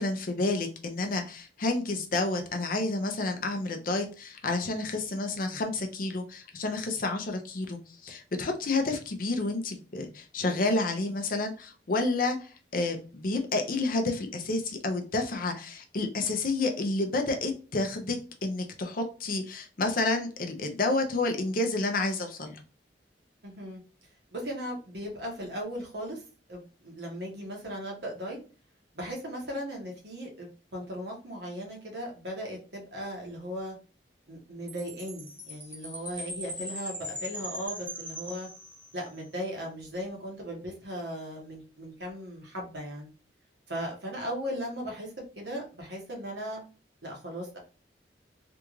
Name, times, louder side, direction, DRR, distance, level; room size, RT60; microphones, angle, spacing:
voice 1, 0.0-22.6, left 2 dB, 50° left, 4 dB, 0.6 m, -30 dB
voice 2, 23.4-23.8 24.3-26.2 26.5-28.4 28.9-33.7 34.3-38.5 38.9-43.1 43.7-46.6 47.0-47.6, equal, 70° right, -1 dB, 1.3 m, -37 dB
Chime, 34.7-39.2, equal, 10° right, 0.8 m, -40 dB
3.4 x 2.5 x 3.1 m, 0.36 s
head